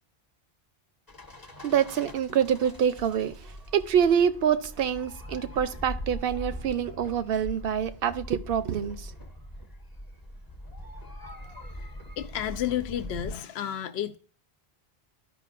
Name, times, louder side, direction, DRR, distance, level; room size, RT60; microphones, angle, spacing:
sound 1, 1.1-13.4, equal, 20° left, 0.9 m, -42 dB
voice 1, 1.6-9.1, right 8 dB, 65° right, 0.7 m, -26 dB
voice 2, 11.8-14.2, left 10 dB, 75° left, 0.9 m, -32 dB
13.0 x 5.2 x 2.5 m
omnidirectional pair, 1.1 m